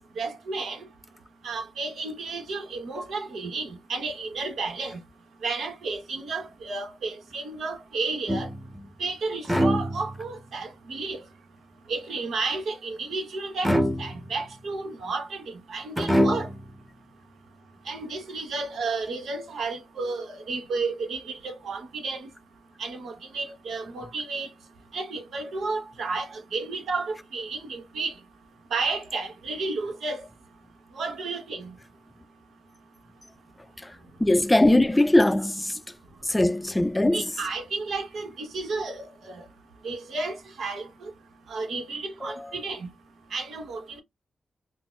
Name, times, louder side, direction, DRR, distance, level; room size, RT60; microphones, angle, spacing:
voice 1, 0.2-0.9 1.4-5.0 5.4-8.5 9.0-11.2 11.9-13.7 14.0-16.5 17.9-22.3 22.8-24.5 24.9-28.1 28.7-30.2 31.0-31.7 37.1-39.4 39.8-40.9 41.5-42.9 43.3-44.0, right 3 dB, 80° right, 0.9 m, -32 dB
sound 1, 8.3-8.9 9.5-10.4 13.6-14.5 16.0-16.7, equal, ahead, 0.8 m, -25 dB
voice 2, 34.2-35.8 36.2-37.2 42.2-42.5, left 1 dB, 15° left, 0.4 m, -21 dB
4.0 x 2.0 x 2.3 m
cardioid pair, 65°, 0 cm